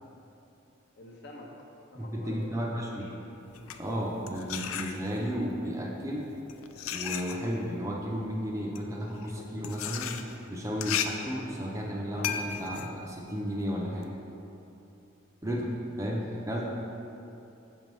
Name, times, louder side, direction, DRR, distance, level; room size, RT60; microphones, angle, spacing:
voice 1, 0.9-1.5 1.9-3.2 16.1-16.2, left 1 dB, 55° left, -1 dB, 0.7 m, -47 dB
voice 2, 1.9-3.1 3.8-6.3 6.9-10.2 10.5-14.1 15.4-15.7 16.0-16.8, equal, 15° right, -2 dB, 0.5 m, -33 dB
sound 1, 3.4-5.4 6.2-14.1, left 8 dB, 85° left, 0.3 m, -36 dB
6.2 x 5.3 x 3.1 m, 2.9 s
head